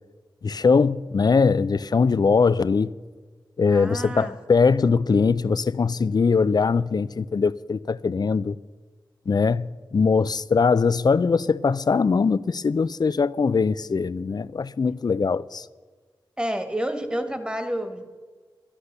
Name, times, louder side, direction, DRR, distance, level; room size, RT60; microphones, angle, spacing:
voice 1, 0.4-2.9 3.6-8.6 9.3-15.6, left 5 dB, 55° left, 0.5 m, -21 dB
voice 2, 3.7-4.3 16.4-18.2, equal, 10° right, 1.7 m, -29 dB
11.5 x 11.5 x 6.8 m
cardioid pair, 45°, 9 cm